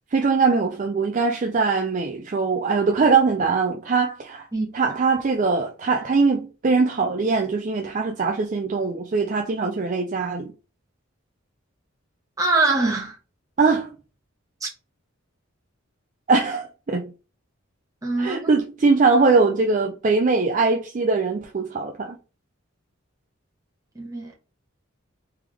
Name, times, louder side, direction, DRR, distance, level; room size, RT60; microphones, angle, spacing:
voice 1, 0.1-4.5 4.7-10.5 13.6-13.9 16.3-17.1 18.2-22.2, right 4 dB, 35° right, 0.4 m, -21 dB
voice 2, 12.4-13.2 14.6-14.7 18.0-18.5 23.9-24.3, right 3 dB, 15° right, 1.2 m, -23 dB
3.4 x 3.4 x 3.4 m
head